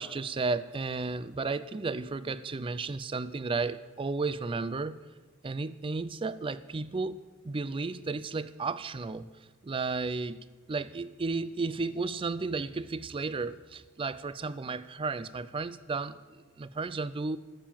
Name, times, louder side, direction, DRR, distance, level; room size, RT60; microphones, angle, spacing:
voice 1, 0.0-5.0 5.4-9.3 9.6-17.4, right 4 dB, 25° right, 16 dB, 0.4 m, -33 dB
12.0 x 7.3 x 7.2 m, 1.3 s
head